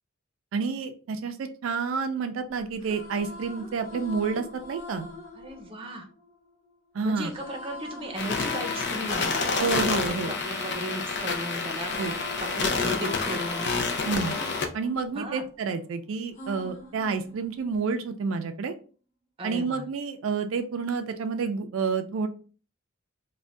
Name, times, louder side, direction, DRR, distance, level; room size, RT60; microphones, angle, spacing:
voice 1, 0.5-5.1 6.9-7.3 9.6-10.3 12.0-12.1 14.0-14.4 14.7-18.8 19.4-22.3, right 5 dB, 80° right, 6 dB, 0.4 m, -29 dB
sound 1, 2.6-6.7 7.3-11.3 11.6-15.8 16.3-17.8, left 3 dB, 40° left, 1.2 m, -42 dB
voice 2, 5.3-6.1 7.0-13.7 15.1-15.4 19.4-19.8, right 1 dB, 25° right, 1 dB, 0.6 m, -36 dB
sound 2, 8.2-14.7, left 4 dB, 60° left, 0.5 m, -29 dB
2.5 x 2.1 x 3.3 m, 0.38 s
head